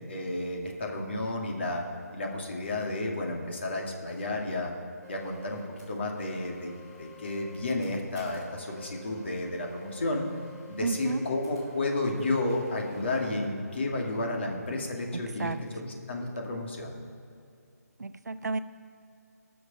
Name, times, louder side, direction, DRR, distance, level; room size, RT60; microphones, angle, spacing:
voice 1, 0.0-1.8 2.1-4.7 5.1-5.6 5.9-6.7 7.0-10.3 10.7-16.9, left 2 dB, 40° left, 0 dB, 2.3 m, -32 dB
sound 1, 5.0-13.5, right 1 dB, 10° left, 3.0 m, -51 dB
voice 2, 10.8-11.2 15.1-15.6 18.0-18.6, right 4 dB, 75° right, 11 dB, 0.7 m, -32 dB
18.5 x 6.6 x 5.8 m, 2.5 s
figure-of-eight pair, 170°, 9 cm